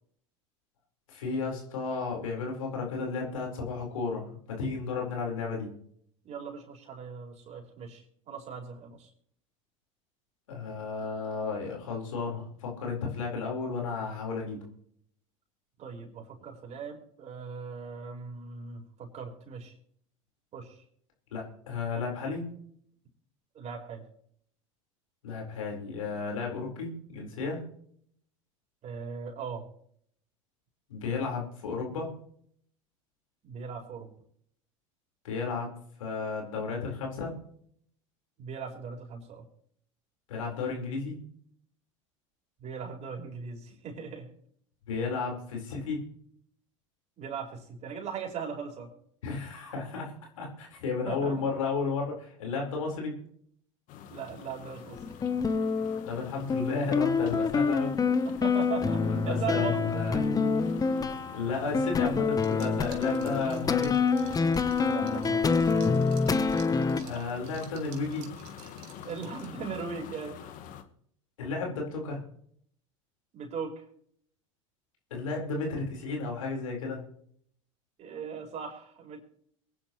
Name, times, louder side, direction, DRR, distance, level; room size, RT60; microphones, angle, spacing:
voice 1, 1.1-5.7 10.5-14.6 21.3-22.6 25.2-27.6 30.9-32.1 35.2-35.7 36.0-37.3 40.3-41.2 44.9-46.1 49.2-53.2 56.0-58.0 59.0-60.2 61.3-64.0 67.0-68.3 71.4-72.2 75.1-77.0, left 4 dB, 80° left, 0 dB, 4.5 m, -33 dB
voice 2, 6.2-9.1 15.8-19.7 20.5-20.8 23.5-24.0 28.8-29.7 33.4-34.1 38.4-39.4 42.6-44.3 47.2-48.9 51.0-51.4 54.1-55.0 58.4-60.4 64.8-65.9 69.0-70.6 73.3-73.8 78.0-79.2, right 6 dB, 40° right, 2 dB, 4.4 m, -39 dB
sound 1, 53.9-70.8, left 9 dB, 50° left, 1.5 m, -46 dB
sound 2, 55.0-67.0, left 4 dB, 20° left, 0.9 m, -27 dB
Liquid, 62.3-69.7, right 10 dB, 65° right, 2.2 m, -53 dB
23.5 x 10.5 x 3.1 m, 0.64 s
hypercardioid pair, 85°, 17 cm